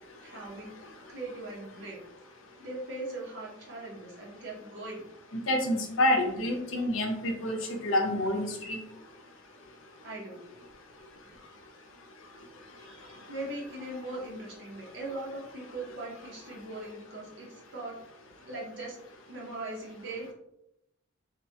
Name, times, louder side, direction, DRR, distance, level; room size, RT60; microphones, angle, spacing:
voice 1, 0.2-0.8 1.1-2.0 2.6-5.1 10.0-10.4 12.8-18.0 18.5-19.0 19.3-20.3, right 2 dB, 60° right, -3 dB, 0.8 m, -40 dB
voice 2, 5.3-8.8, left 1 dB, 75° left, 3 dB, 0.6 m, -28 dB
3.1 x 2.2 x 2.8 m, 0.84 s
head